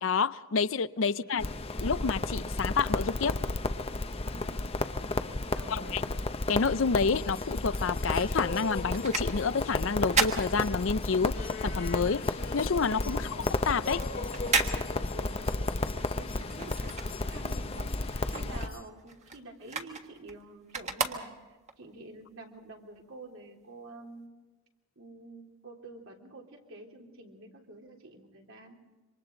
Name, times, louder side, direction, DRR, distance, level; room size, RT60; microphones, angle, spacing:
voice 1, 0.0-1.4 1.8-3.4 5.7-6.0 6.5-12.2 12.5-13.2 13.7-14.1, left 5 dB, 65° left, 15 dB, 0.6 m, -29 dB
voice 2, 1.0-1.4 4.3-4.6 5.5-6.0 13.1-13.4 15.1-15.7 16.1-24.3 24.9-28.8, right 2 dB, 70° right, 0 dB, 3.5 m, -48 dB
Crackle, 1.4-18.7, left 2 dB, 30° left, 0.7 m, -33 dB
sound 1, 6.9-18.9, left 4 dB, 45° left, 1.5 m, -44 dB
sound 2, 7.7-11.3 11.7-17.7 18.0-21.8 22.3-22.4, right 4 dB, 35° right, 1.6 m, -35 dB
27.5 x 25.0 x 3.9 m, 1.2 s
head